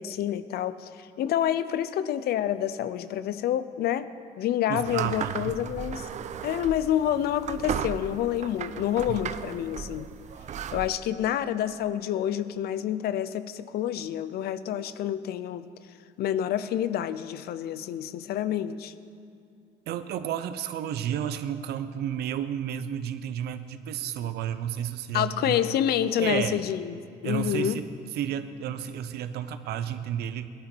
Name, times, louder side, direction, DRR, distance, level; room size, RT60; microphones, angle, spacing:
voice 1, 0.0-4.1 4.4-6.1 6.4-10.1 10.7-15.7 16.2-18.9 25.1-27.8, left 11 dB, 70° left, 13 dB, 0.7 m, -28 dB
voice 2, 4.7-5.5 9.1-9.2 19.9-25.6 26.2-26.6 27.2-27.8 28.1-30.5, right 9 dB, 70° right, 11 dB, 0.8 m, -31 dB
sound 1, 4.9-10.9, right 8 dB, 45° right, 0.6 m, -36 dB
18.0 x 11.5 x 4.5 m, 2.4 s
cardioid pair, 110°, 17 cm